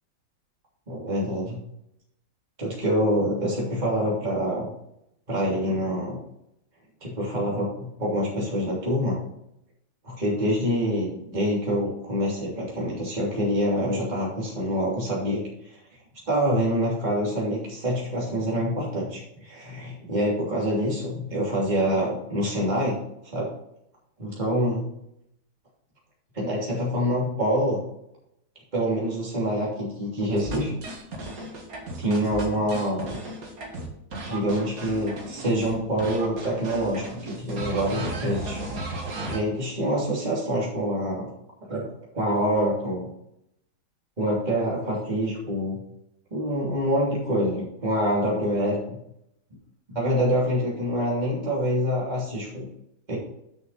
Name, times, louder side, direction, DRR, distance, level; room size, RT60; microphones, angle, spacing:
voice 1, 0.9-1.6 2.6-4.7 5.3-6.2 7.0-9.2 10.0-15.4 16.3-23.0 23.2-23.5 24.2-24.9 26.3-27.8 28.7-30.7 32.0-33.2 34.3-38.6 39.3-41.3 41.7-41.9 42.1-43.1 44.2-45.8 46.3-49.0 49.9-52.7 53.1-53.2, equal, 25° right, -5 dB, 3.1 m, -26 dB
sound 1, 30.4-35.7 36.0-39.4, right 2 dB, 50° right, 2.3 m, -35 dB
10.5 x 6.6 x 4.1 m, 0.79 s
omnidirectional pair, 2.0 m